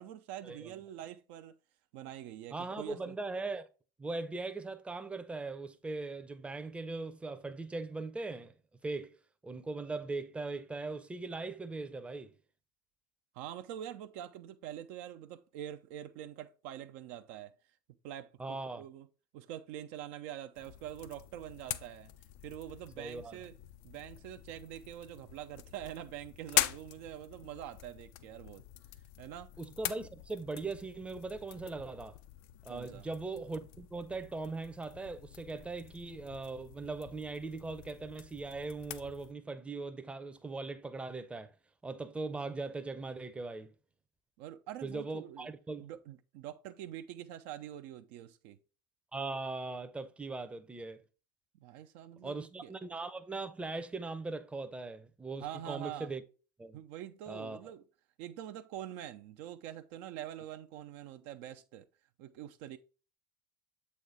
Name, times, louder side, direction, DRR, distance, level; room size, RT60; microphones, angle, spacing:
voice 1, 0.0-1.6 1.9-3.1 13.3-17.5 18.0-19.1 19.3-22.1 22.4-23.5 23.8-28.6 29.2-29.5 32.7-33.1 44.4-45.5 45.8-48.6 51.6-52.7 55.4-56.1 56.7-57.8 58.2-61.9 62.2-62.8, right 11 dB, 50° right, 0.5 m, -45 dB
voice 2, 2.5-3.6 4.0-8.6 8.8-9.2 9.4-12.4 18.4-18.8 23.0-23.4 29.6-32.2 32.6-41.5 41.8-43.7 44.8-45.9 49.1-51.0 52.2-56.2 56.6-56.8 57.3-57.6, right 3 dB, 10° right, 0.7 m, -40 dB
sound 1, 20.6-39.3, left 13 dB, 55° left, 0.5 m, -43 dB
7.8 x 4.2 x 3.5 m
figure-of-eight pair, 70°, 11 cm